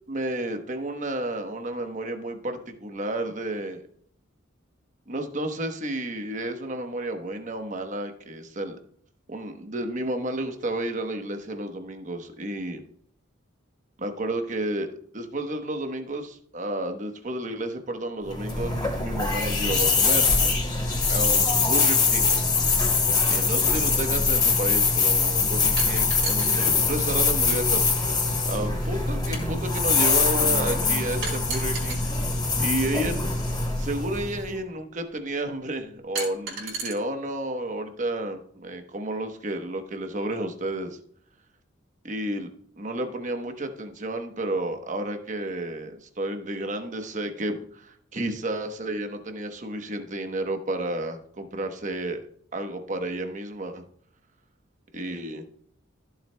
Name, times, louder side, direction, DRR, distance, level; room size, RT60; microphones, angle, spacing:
voice 1, 0.1-3.8 5.1-8.8 9.3-12.8 14.0-14.9 15.1-20.3 21.1-22.3 23.3-28.1 28.4-32.1 32.6-33.3 33.8-41.0 42.0-42.5 42.8-52.2 52.5-53.8 54.9-55.4, right 1 dB, 40° right, 6 dB, 1.0 m, -31 dB
sound 1, 18.3-34.5, left 4 dB, 20° left, 3.1 m, -23 dB
sound 2, 25.8-26.7 27.9-28.0 31.2-32.0 33.5-33.6 36.2-36.9, right 4 dB, 70° right, 4.3 m, -32 dB
14.5 x 7.6 x 2.2 m, 0.62 s
head